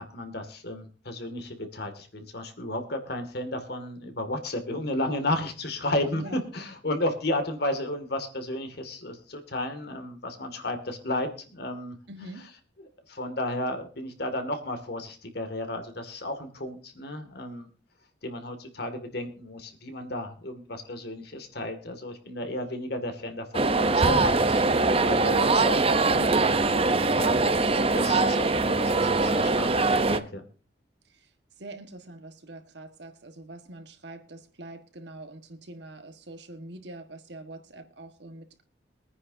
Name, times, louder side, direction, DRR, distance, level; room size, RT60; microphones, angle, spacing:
voice 1, 0.0-12.0 12.8-17.7 18.2-26.3 27.2-29.7 30.1-30.4, left 1 dB, 60° left, 6 dB, 2.2 m, -33 dB
voice 2, 12.1-12.5 26.2-27.1 31.1-31.3 31.6-38.6, right 1 dB, 65° right, 7 dB, 1.6 m, -44 dB
sound 1, 23.5-30.2, right 3 dB, 30° right, 0.7 m, -22 dB
23.0 x 9.7 x 2.7 m, 0.37 s
head